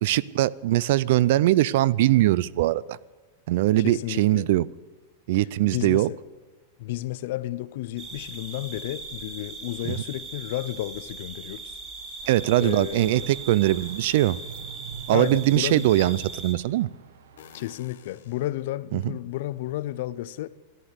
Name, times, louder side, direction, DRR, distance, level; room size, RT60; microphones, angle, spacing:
voice 1, 0.0-3.0 3.5-4.7 5.3-6.1 9.9-10.0 12.3-14.4 15.1-16.9 18.9-19.1, right 15 dB, 50° right, 0.4 m, -21 dB
voice 2, 3.8-4.5 5.6-6.2 6.8-11.8 12.6-13.3 15.1-15.9 17.5-20.5, left 15 dB, 50° left, 0.5 m, -32 dB
sound 1, 8.0-16.5, right 4 dB, 25° right, 1.7 m, -40 dB
sound 2, 12.2-17.8, right 8 dB, 90° right, 1.0 m, -47 dB
sound 3, 13.0-13.1 14.5-14.6 15.7-16.5 17.4-18.6, left 10 dB, 85° left, 1.3 m, -49 dB
13.5 x 11.0 x 8.0 m
supercardioid pair, 170°, 0 cm